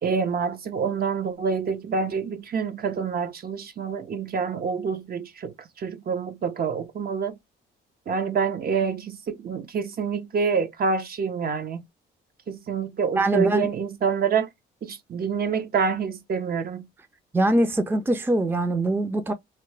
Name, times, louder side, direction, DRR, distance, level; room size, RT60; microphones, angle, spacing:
voice 1, 0.0-7.4 8.1-11.8 12.5-14.5 14.8-16.9, right 5 dB, 50° right, 0.7 m, -27 dB
voice 2, 13.2-13.7 17.3-19.3, right 2 dB, 10° right, 0.5 m, -22 dB
2.9 x 2.1 x 3.1 m
cardioid pair, 90°, 20 cm